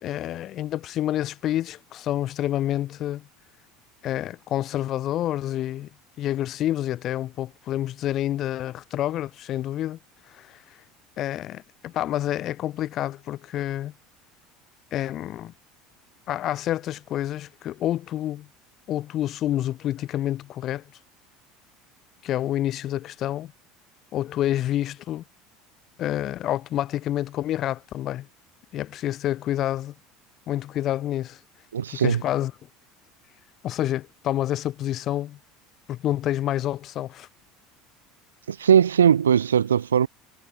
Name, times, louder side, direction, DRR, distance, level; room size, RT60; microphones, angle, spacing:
voice 1, 0.0-3.3 4.0-5.9 6.2-10.0 10.3-10.6 11.2-13.9 14.9-15.5 16.3-18.5 18.9-20.8 22.2-23.5 24.1-25.2 26.0-28.3 28.7-29.9 30.5-31.4 31.9-32.5 33.6-35.4 35.9-37.3, left 13 dB, 50° left, 1.3 m, -28 dB
voice 2, 31.7-32.2 38.5-40.1, right 8 dB, 90° right, 0.6 m, -19 dB
hypercardioid pair, 75°, 0 cm